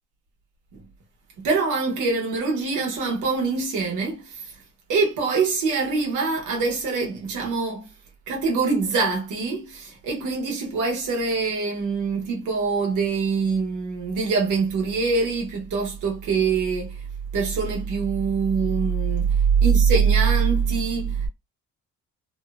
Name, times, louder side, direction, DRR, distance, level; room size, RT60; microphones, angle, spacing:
voice 1, 1.4-4.6 4.9-7.9 8.3-17.0 17.3-21.3, right 5 dB, 85° right, 1.0 m, -23 dB
2.8 x 2.0 x 2.3 m
cardioid pair, 90°, 30 cm